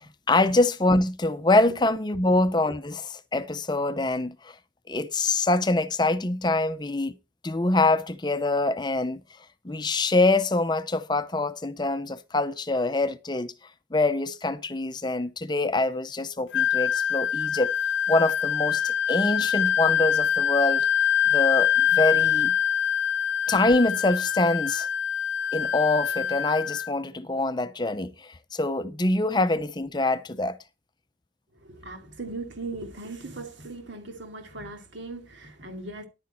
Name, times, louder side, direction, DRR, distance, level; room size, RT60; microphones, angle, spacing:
voice 1, 0.3-4.5 4.9-7.1 7.4-9.2 9.6-13.5 13.9-17.7 18.1-20.8 21.3-22.5 23.5-24.9 25.5-30.6, left 2 dB, 25° left, 0.6 m, -25 dB
Wind instrument woodwind instrument, 16.5-26.9, left 9 dB, 75° left, 0.5 m, -24 dB
voice 2, 31.5-36.1, right 2 dB, 85° right, 2.6 m, -38 dB
10.5 x 9.1 x 4.3 m
head